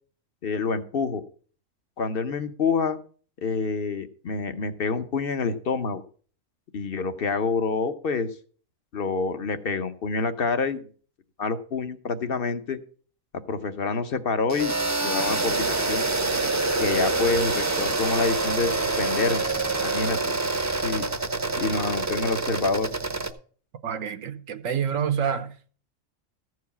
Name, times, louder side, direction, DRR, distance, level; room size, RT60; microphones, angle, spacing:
voice 1, 0.4-1.2 2.0-3.0 3.4-6.0 6.7-8.3 8.9-10.9 11.4-12.8 13.5-14.8 15.0-16.0 16.8-19.4 19.8-20.2 20.8-21.1 21.6-22.9, left 4 dB, 50° left, 1.0 m, -27 dB
sound 1, 14.5-23.3, right 3 dB, 20° right, 0.6 m, -26 dB
voice 2, 23.8-25.7, right 7 dB, 80° right, 1.3 m, -28 dB
14.5 x 4.8 x 6.9 m
omnidirectional pair, 1.4 m